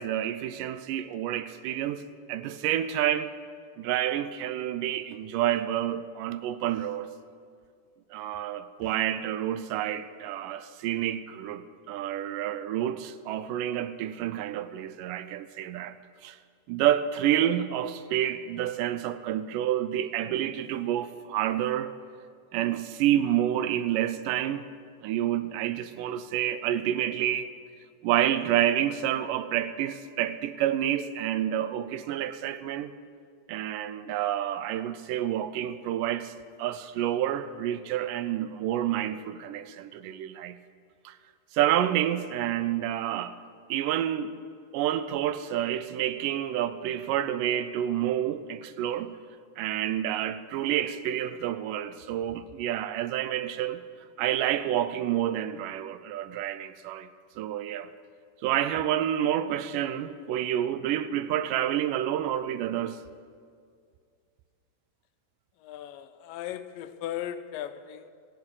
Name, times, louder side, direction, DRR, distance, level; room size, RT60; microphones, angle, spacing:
voice 1, 0.0-2.0 2.3-3.3 3.8-7.1 8.1-16.0 16.2-16.4 16.7-21.9 22.5-24.6 25.0-27.5 28.0-32.9 33.5-36.3 36.6-40.6 41.1-41.2 41.5-43.4 43.7-44.3 44.7-49.2 49.6-53.8 54.2-57.1 57.4-57.9 58.4-63.0, right 11 dB, 80° right, 2.2 m, -29 dB
voice 2, 65.6-68.1, left 11 dB, 85° left, 2.4 m, -37 dB
17.5 x 16.0 x 4.9 m
omnidirectional pair, 3.8 m